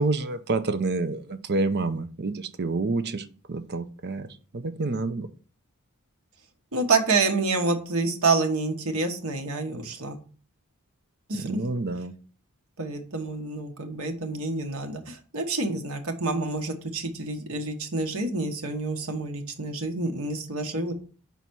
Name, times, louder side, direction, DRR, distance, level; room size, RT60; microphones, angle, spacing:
voice 1, 0.0-4.3 4.5-5.3 11.4-12.1, right 3 dB, 50° right, 11 dB, 0.6 m, -28 dB
voice 2, 6.7-10.2 11.3-11.7 12.8-20.9, right 3 dB, 70° right, 4 dB, 1.3 m, -28 dB
5.7 x 4.1 x 6.1 m, 0.39 s
head